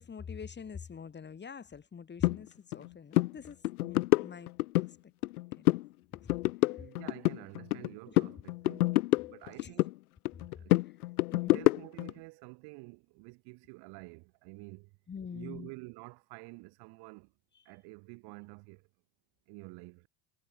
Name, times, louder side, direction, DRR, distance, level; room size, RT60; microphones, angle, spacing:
voice 1, 0.0-5.0 5.6-5.8 6.2-6.4 8.1-8.2 9.6-9.7 10.7-10.9 11.3-11.6 15.1-15.7, left 6 dB, 25° left, 3.2 m, -45 dB
sound 1, 2.2-2.4 2.7-2.9 3.1-3.3 3.6-4.9 5.2-5.9 6.1-7.9 8.2-9.9 10.3-12.1, left 20 dB, 85° left, 0.6 m, -27 dB
voice 2, 6.7-8.9 9.3-9.9 10.6-10.8 11.5-14.9 15.3-17.3 17.7-18.9 19.5-20.1, right 28 dB, 60° right, 3.7 m, -49 dB
hypercardioid pair, 95°, 44 cm